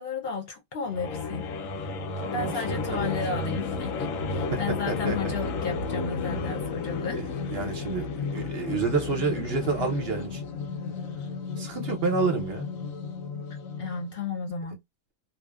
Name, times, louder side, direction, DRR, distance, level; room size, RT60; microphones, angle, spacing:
voice 1, 0.0-1.5 2.3-7.3 13.8-14.8, left 4 dB, 55° left, 0.7 m, -33 dB
sound 1, 0.9-14.1, left 4 dB, 85° left, 1.0 m, -33 dB
voice 2, 2.2-3.4 4.5-5.3 7.1-8.1 8.3-10.4 11.6-12.7, right 4 dB, 55° right, 0.8 m, -29 dB
2.7 x 2.0 x 2.2 m
omnidirectional pair, 1.4 m